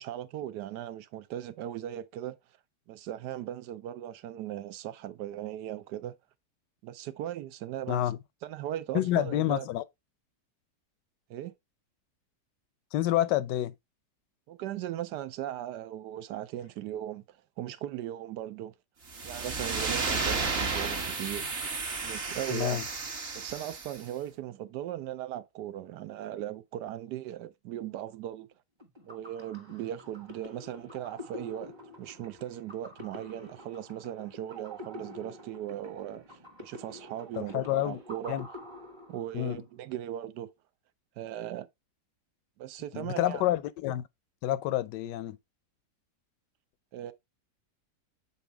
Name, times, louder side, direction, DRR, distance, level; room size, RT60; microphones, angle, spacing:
voice 1, 0.0-2.4 2.9-6.2 6.8-8.1 8.4-9.7 11.3-11.5 14.5-18.7 19.2-21.5 22.0-22.8 23.3-28.5 29.0-38.4 39.1-40.5 41.2-41.7 42.6-43.4 46.9-47.1, right 12 dB, 80° right, 1.2 m, -38 dB
voice 2, 8.9-9.8 12.9-13.7 22.5-22.8 37.4-38.0 38.3-38.5 39.3-39.6 42.9-44.0 44.4-45.4, left 13 dB, 85° left, 1.2 m, -28 dB
sound 1, 19.1-24.0, right 4 dB, 40° right, 1.2 m, -33 dB
sound 2, 28.8-39.6, left 1 dB, 20° right, 1.0 m, -47 dB
7.0 x 4.2 x 3.3 m
omnidirectional pair, 1.8 m